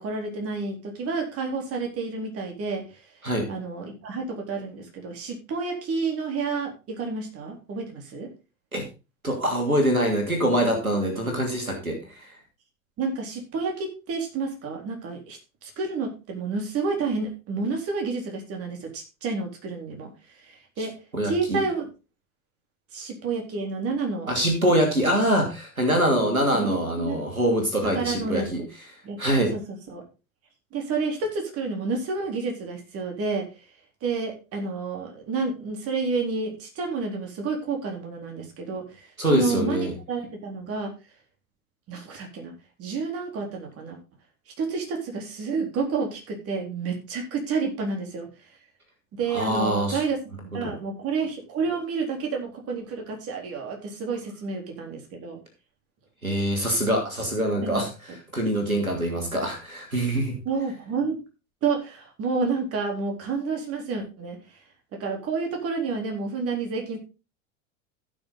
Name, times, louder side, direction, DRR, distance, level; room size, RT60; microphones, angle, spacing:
voice 1, 0.0-2.8 3.5-8.3 13.0-20.1 20.4-20.9 21.2-21.9 22.9-24.3 26.5-27.2 27.9-28.6 29.0-29.6 29.9-30.0 30.7-33.5 34.0-40.9 41.9-42.5 42.8-44.0 44.6-48.3 49.1-55.4 57.6-57.8 60.5-61.2 61.6-64.4 64.9-67.0, right 4 dB, 35° right, 2 dB, 3.9 m, -30 dB
voice 2, 9.2-12.3 21.1-21.6 24.3-28.6 29.2-29.5 39.2-39.9 49.3-50.0 50.6-50.7 56.2-57.9 58.3-60.4, right 1 dB, 85° right, 2 dB, 2.8 m, -24 dB
15.5 x 6.4 x 4.0 m, 0.30 s
figure-of-eight pair, 80°, 41 cm